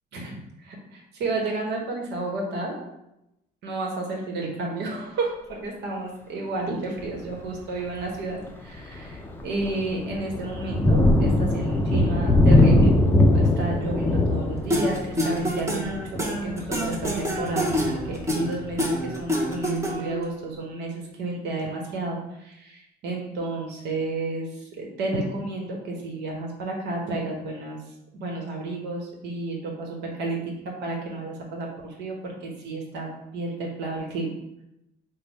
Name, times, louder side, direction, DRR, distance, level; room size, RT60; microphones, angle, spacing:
voice 1, 0.1-2.8 3.6-13.0 13.3-27.8 28.1-33.1 33.3-34.3, right 2 dB, 85° right, -1 dB, 1.0 m, -31 dB
Thunder, 7.0-7.3 7.9-8.0 8.5-19.0, left 1 dB, 15° left, 0.4 m, -22 dB
sound 1, 14.7-20.2, equal, 15° right, 0.8 m, -26 dB
3.3 x 2.1 x 4.1 m, 0.85 s
cardioid pair, 110°, 17 cm